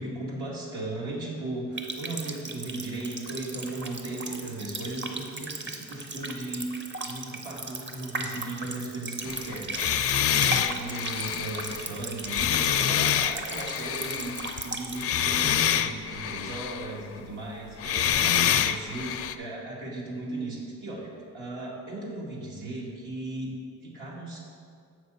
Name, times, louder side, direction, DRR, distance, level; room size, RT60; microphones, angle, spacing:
voice 1, 0.0-6.7 7.0-23.5 23.8-24.4, right 2 dB, 80° right, -4 dB, 2.3 m, -36 dB
Water tap faucet, 1.7-15.1, right 3 dB, 40° right, 0.8 m, -37 dB
sound 1, 9.3-14.7 15.0-17.0 17.8-19.4, left 9 dB, 50° left, 0.4 m, -26 dB
7.2 x 6.0 x 5.6 m, 2.3 s
cardioid pair, 90°, 30 cm